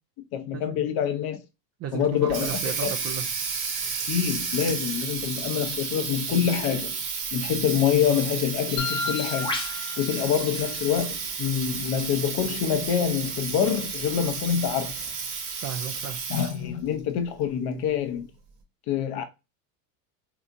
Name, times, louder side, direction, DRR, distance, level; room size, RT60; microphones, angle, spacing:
voice 1, 0.3-1.4 1.9-2.9 4.1-7.0 7.3-9.6 10.0-14.9 16.3-18.3 18.9-19.2, left 8 dB, 50° left, 0.8 m, -26 dB
voice 2, 1.8-3.2 15.5-16.3, right 8 dB, 35° right, 0.4 m, -34 dB
Water tap faucet, 2.0-16.7, right 5 dB, 55° right, 1.1 m, -32 dB
Bird, 8.7-15.1, left 2 dB, 10° left, 0.8 m, -41 dB
sound 1, 8.8-10.8, left 3 dB, 85° left, 0.7 m, -34 dB
3.3 x 2.9 x 2.5 m
hypercardioid pair, 90°, 48 cm